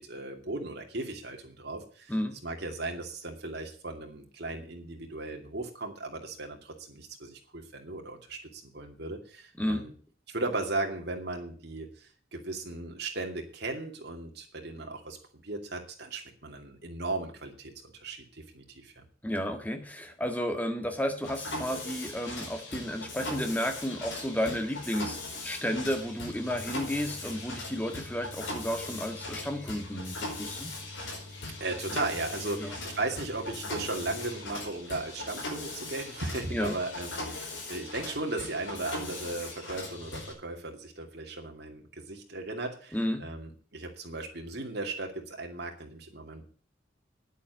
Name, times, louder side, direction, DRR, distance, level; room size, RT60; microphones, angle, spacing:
voice 1, 0.0-2.1 2.4-9.9 10.3-15.2 15.4-19.1 31.6-46.4, right 2 dB, 55° right, 2 dB, 2.6 m, -37 dB
voice 2, 19.2-30.7 32.6-32.7 36.5-36.7 42.9-43.3, equal, 10° left, 6 dB, 1.7 m, -32 dB
Mechanisms, 21.2-40.3, left 2 dB, 70° left, 5.1 m, -39 dB
10.0 x 8.4 x 8.4 m, 0.42 s
head